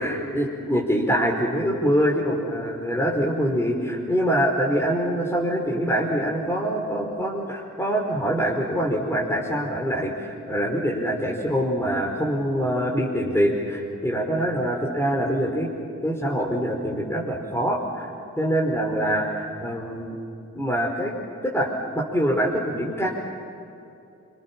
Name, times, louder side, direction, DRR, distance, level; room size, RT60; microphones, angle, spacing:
voice 1, 0.0-15.7 16.0-18.1 18.4-20.1 20.5-21.1 21.4-21.7 21.9-23.1, equal, 10° left, -2 dB, 5.2 m, -24 dB
27.0 x 26.5 x 7.5 m, 2.7 s
cardioid pair, 50°, 31 cm